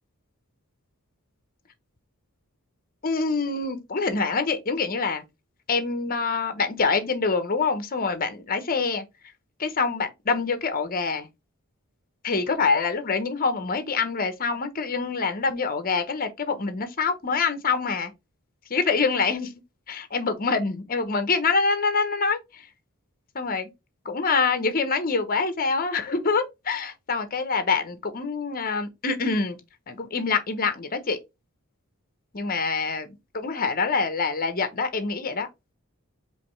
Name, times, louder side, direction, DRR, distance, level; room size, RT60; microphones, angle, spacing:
voice 1, 3.0-5.2 5.7-9.0 9.6-11.3 12.2-18.1 18.7-19.5 19.9-22.7 23.3-23.7 24.0-29.6 29.9-31.2 32.3-35.5, left 4 dB, 40° left, 0.9 m, -25 dB
5.1 x 3.2 x 3.1 m
head